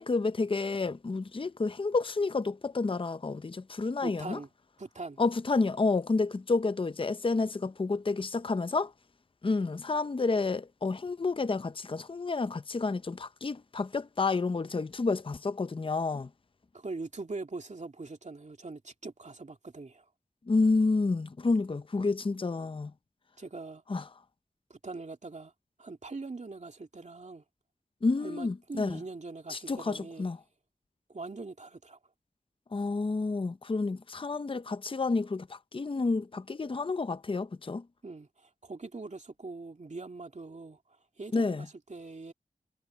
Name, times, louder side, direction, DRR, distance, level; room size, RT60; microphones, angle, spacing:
voice 1, 0.0-4.4 5.2-8.9 9.4-16.3 20.5-22.9 23.9-24.1 28.0-29.0 29.5-30.4 32.7-37.9 41.3-41.7, left 3 dB, 35° left, 0.6 m, -30 dB
voice 2, 4.0-4.5 4.8-5.2 16.7-20.0 23.4-23.8 24.7-25.5 25.8-27.4 28.2-30.3 31.1-32.0 38.0-40.8 41.2-42.3, right 3 dB, 55° right, 2.4 m, -42 dB
wide cardioid pair, 75°, 15 cm